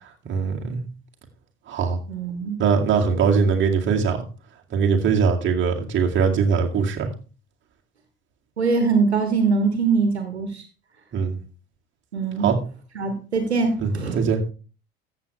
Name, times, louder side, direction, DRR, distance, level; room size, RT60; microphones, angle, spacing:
voice 1, 0.2-0.8 1.7-2.0 2.6-4.2 4.7-7.1 11.1-11.4 12.4-12.6 13.8-14.4, right 5 dB, 35° right, 1 dB, 2.3 m, -21 dB
voice 2, 2.1-2.6 8.6-10.6 12.1-12.5 13.0-14.2, right 4 dB, 80° right, 7 dB, 1.6 m, -22 dB
14.0 x 7.6 x 3.2 m, 0.34 s
figure-of-eight pair, 65°, 32 cm